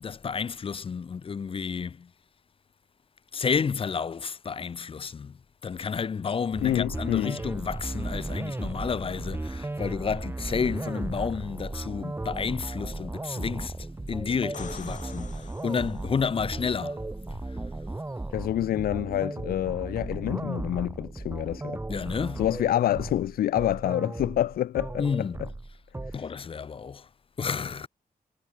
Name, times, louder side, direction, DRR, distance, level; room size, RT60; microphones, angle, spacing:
voice 1, 0.0-2.1 3.3-5.4 5.6-13.7 14.1-17.0 21.9-22.5 25.0-25.4 26.1-27.1 27.4-27.9, left 6 dB, 40° left, 0.6 m, -31 dB
sound 1, 6.5-26.2, right 2 dB, 15° right, 1.5 m, -36 dB
voice 2, 6.6-7.4 18.3-21.8 22.4-25.5 26.1-26.3, left 12 dB, 85° left, 0.4 m, -27 dB
sound 2, 14.3-16.3 20.0-20.1, left 7 dB, 60° left, 2.8 m, -46 dB
wide cardioid pair, 115°, 15 cm